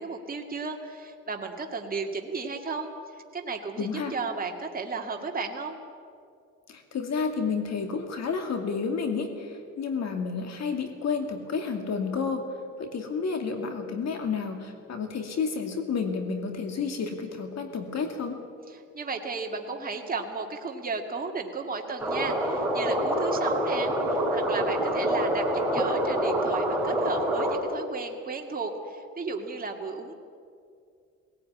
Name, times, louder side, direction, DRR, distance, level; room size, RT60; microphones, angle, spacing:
voice 1, 0.0-2.9 3.3-5.8 18.7-30.1, right 4 dB, 30° right, 2 dB, 2.2 m, -34 dB
voice 2, 3.8-4.1 6.7-12.4 12.8-18.4, left 5 dB, 60° left, 5 dB, 2.4 m, -30 dB
sound 1, 22.0-27.6, equal, 5° right, 4.8 m, -26 dB
18.5 x 17.0 x 9.5 m, 2.3 s
cardioid pair, 90°, 30 cm